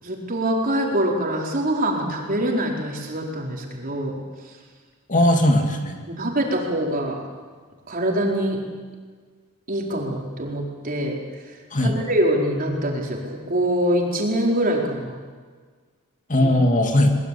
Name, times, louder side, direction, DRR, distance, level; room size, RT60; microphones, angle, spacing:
voice 1, 0.0-4.2 4.4-4.6 6.1-7.2 7.9-8.6 9.7-11.2 11.4-15.2 16.4-16.5, right 1 dB, 40° right, 0 dB, 4.5 m, -24 dB
voice 2, 5.1-6.0 11.7-11.9 16.3-17.1, left 1 dB, 35° left, 3 dB, 2.6 m, -18 dB
23.0 x 21.5 x 8.5 m, 1.5 s
head